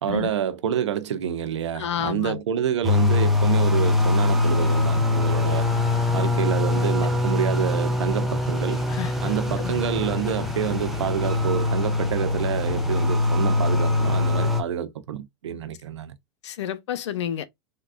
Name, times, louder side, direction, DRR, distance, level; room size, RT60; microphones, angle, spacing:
voice 1, 0.0-5.7 6.1-8.9 9.2-16.2, right 9 dB, 90° right, 0.5 m, -28 dB
voice 2, 1.8-2.4 8.9-9.1 9.6-9.7 16.4-17.4, left 10 dB, 85° left, 0.5 m, -29 dB
sound 1, 2.8-14.6, left 2 dB, ahead, 0.7 m, -23 dB
3.6 x 2.2 x 2.3 m
hypercardioid pair, 110°, 14 cm